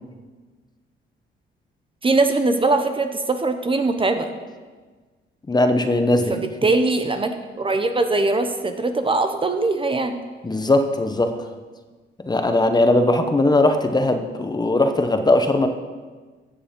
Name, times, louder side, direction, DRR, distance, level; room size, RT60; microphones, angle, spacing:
voice 1, 2.0-4.3 6.3-10.2, right 3 dB, 25° right, 7 dB, 1.0 m, -21 dB
voice 2, 5.5-6.3 10.4-11.4 12.2-15.7, left 2 dB, 20° left, 7 dB, 1.0 m, -19 dB
14.5 x 6.9 x 5.3 m, 1.4 s
cardioid pair, 90°, 20 cm